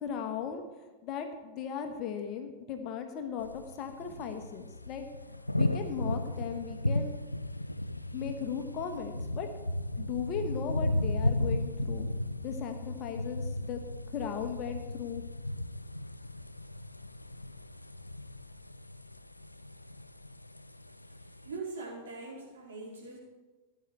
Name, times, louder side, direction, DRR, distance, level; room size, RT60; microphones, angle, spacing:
voice 1, 0.0-0.6 1.0-5.0 5.6-7.1 8.1-9.5 10.0-12.1 12.4-13.8 14.1-15.2, left 7 dB, 40° left, 6 dB, 1.2 m, -37 dB
sound 1, 3.4-21.6, left 1 dB, 85° left, 0.4 m, -35 dB
voice 2, 21.4-23.2, right 3 dB, 60° right, -5 dB, 4.3 m, -41 dB
16.0 x 9.3 x 3.3 m, 1.2 s
figure-of-eight pair, 90°, 0 cm